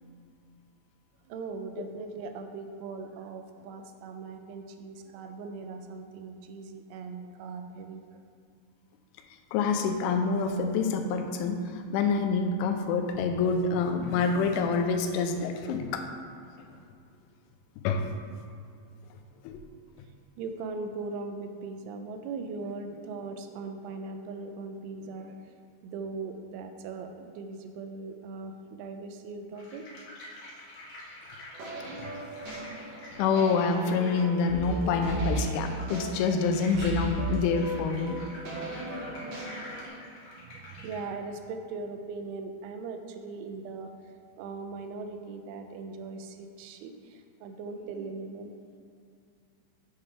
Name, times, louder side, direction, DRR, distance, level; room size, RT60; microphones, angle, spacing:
voice 1, 1.3-8.2 20.4-25.6 25.8-29.9 40.2-48.6, right 4 dB, 85° right, 6 dB, 3.0 m, -40 dB
voice 2, 9.5-16.1 17.8-18.1 19.4-19.6 33.2-38.2, left 5 dB, 90° left, 5 dB, 3.1 m, -27 dB
sound 1, 29.5-41.1, left 1 dB, 70° left, 1.5 m, -48 dB
sound 2, 31.5-39.9, right 3 dB, 65° right, 1.6 m, -36 dB
8.6 x 7.4 x 3.3 m, 2.3 s
omnidirectional pair, 5.5 m